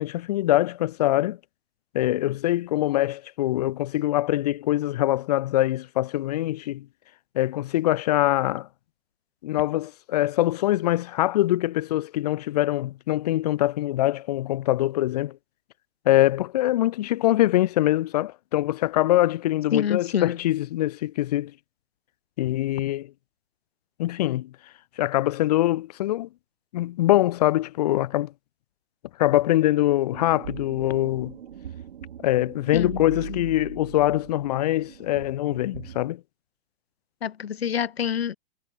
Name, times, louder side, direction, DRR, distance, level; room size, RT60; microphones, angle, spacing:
voice 1, 0.0-1.4 1.9-6.9 7.3-8.7 9.4-15.4 16.0-21.5 22.4-23.1 24.0-24.5 25.0-26.3 26.7-28.3 29.2-31.4 32.2-36.2, left 15 dB, 40° left, 0.9 m, -23 dB
voice 2, 19.7-20.4 32.7-33.0 33.3-33.4 37.2-38.4, left 8 dB, 85° left, 1.4 m, -26 dB
sound 1, 30.1-36.1, right 9 dB, 75° right, 1.6 m, -40 dB
hypercardioid pair, 155°, 30 cm